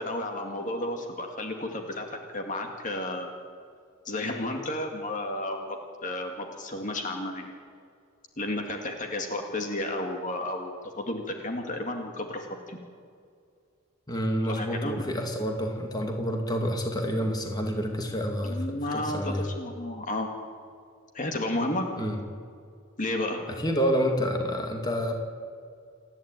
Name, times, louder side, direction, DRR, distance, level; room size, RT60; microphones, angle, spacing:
voice 1, 0.0-3.4 4.0-7.5 8.4-12.8 14.4-15.1 18.4-20.3 21.1-21.9 23.0-23.4, left 1 dB, 35° left, 3 dB, 2.1 m, -32 dB
voice 2, 14.1-19.5 22.0-22.2 23.5-25.1, equal, 20° left, 3 dB, 2.3 m, -28 dB
28.5 x 11.0 x 9.1 m, 2.3 s
head